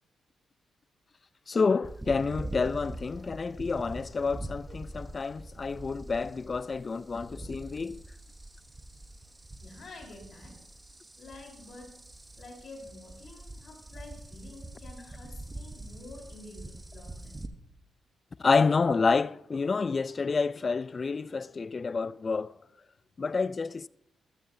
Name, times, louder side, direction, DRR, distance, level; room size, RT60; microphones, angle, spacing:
voice 1, 1.5-8.0 18.4-22.5 23.2-23.9, left 4 dB, 40° left, 0.4 m, -28 dB
sound 1, 1.8-17.5, right 2 dB, 20° right, 1.1 m, -44 dB
voice 2, 9.6-10.6 11.2-12.0 12.4-17.4, left 2 dB, 60° left, 4.0 m, -49 dB
14.0 x 13.0 x 2.7 m
cardioid pair, 70°, 0 cm